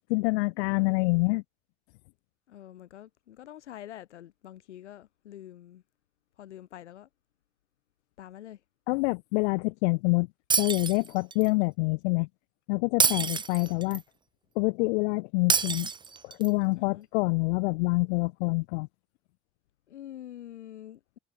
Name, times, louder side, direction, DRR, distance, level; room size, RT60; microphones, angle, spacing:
voice 1, 0.0-1.4 8.9-10.3 10.6-12.3 12.7-14.0 14.6-15.9 16.2-18.9, left 27 dB, 70° left, 0.5 m, -26 dB
voice 2, 0.5-1.3 2.5-5.8 6.4-7.1 8.2-8.6 13.1-13.4 16.7-17.1 19.9-21.2, left 12 dB, 85° left, 1.5 m, -46 dB
Shatter, 10.5-11.5 13.0-14.0 15.5-16.5, right 5 dB, 15° right, 0.5 m, -27 dB
hypercardioid pair, 70°, 34 cm